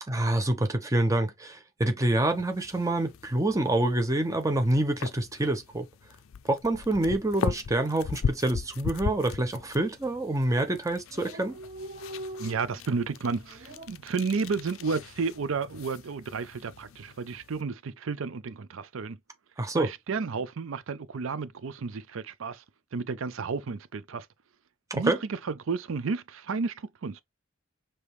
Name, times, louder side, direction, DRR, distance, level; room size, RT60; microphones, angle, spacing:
voice 1, 0.1-5.9 6.5-11.6 19.6-19.9 24.9-25.2, right 1 dB, 15° right, 0.7 m, -27 dB
sound 1, 2.3-17.6, left 6 dB, 70° left, 0.4 m, -39 dB
Dog, 7.6-7.9 8.2-8.3 8.5-9.2 9.8-10.1 10.4-10.5 10.7-10.8 10.9-13.9, right 1 dB, 40° right, 1.7 m, -43 dB
voice 2, 12.4-19.2 19.7-22.6 22.9-24.3 24.9-25.4 25.7-27.2, right 4 dB, 65° right, 0.5 m, -32 dB
5.0 x 2.9 x 3.1 m
head